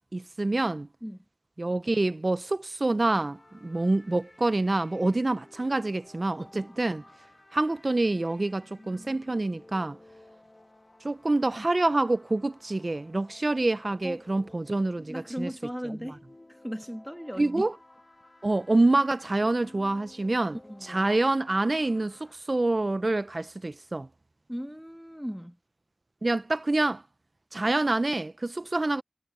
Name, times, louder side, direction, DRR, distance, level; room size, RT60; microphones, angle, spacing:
voice 1, 0.1-0.9 1.6-7.0 7.5-10.0 11.0-15.5 15.8-16.0 17.4-17.7 18.4-24.1 26.2-27.0 27.5-29.0, right 2 dB, 70° right, 0.4 m, -27 dB
sound 1, 3.1-22.3, left 1 dB, 55° left, 1.5 m, -55 dB
voice 2, 15.0-16.2 16.5-17.7 20.6-21.0 24.5-25.6, equal, 5° right, 1.5 m, -37 dB
wide cardioid pair, 40°, 0 cm